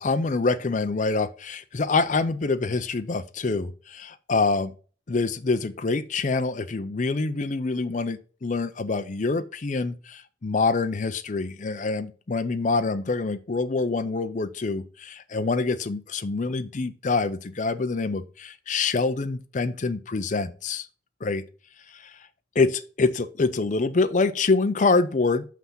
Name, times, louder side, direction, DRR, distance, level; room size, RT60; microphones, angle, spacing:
voice 1, 0.0-4.7 5.1-20.9 21.2-21.4 21.9-22.2 22.6-25.4, left 3 dB, 40° left, 9 dB, 0.5 m, -26 dB
5.9 x 5.7 x 5.5 m, 0.38 s
head